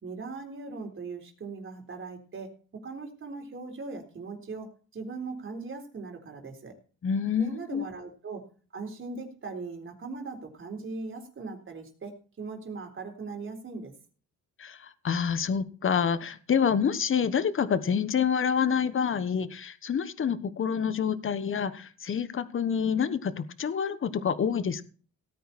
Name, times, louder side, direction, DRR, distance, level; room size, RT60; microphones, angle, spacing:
voice 1, 0.0-6.7 7.4-8.5 8.7-13.9, right 4 dB, 40° right, 4 dB, 4.0 m, -39 dB
voice 2, 7.0-7.9 14.6-24.8, left 7 dB, 45° left, 13 dB, 1.2 m, -27 dB
17.5 x 9.2 x 4.3 m, 0.40 s
cardioid pair, 90°, 30 cm